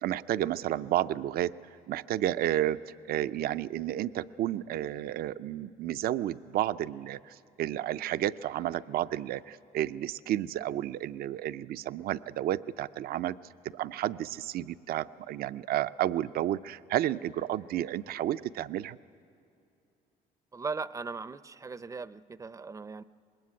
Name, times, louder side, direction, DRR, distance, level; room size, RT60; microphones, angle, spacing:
voice 1, 0.0-1.5 1.9-13.4 13.7-19.0, right 12 dB, 65° right, 13 dB, 0.5 m, -31 dB
voice 2, 20.5-23.0, right 4 dB, 20° right, 16 dB, 0.6 m, -38 dB
26.0 x 21.0 x 9.6 m, 2.6 s
cardioid pair, 110°, 17 cm